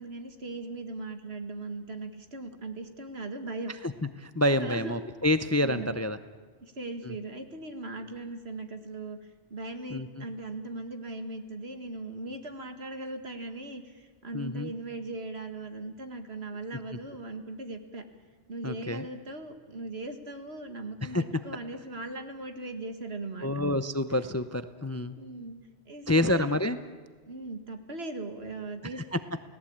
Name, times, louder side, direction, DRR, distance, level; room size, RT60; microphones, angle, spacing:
voice 1, 0.0-3.7 4.6-4.9 5.6-6.0 6.6-9.2 9.5-18.0 18.5-23.5 25.2-25.6 25.9-26.5 27.3-29.0, right 2 dB, 65° right, 7 dB, 2.2 m, -39 dB
voice 2, 4.2-6.2 7.0-7.1 9.9-10.2 14.3-14.7 18.6-19.0 21.0-21.4 23.4-25.1 26.1-26.8 29.0-29.2, left 1 dB, 15° left, 11 dB, 0.6 m, -28 dB
30.0 x 18.0 x 8.7 m, 1.5 s
omnidirectional pair, 1.2 m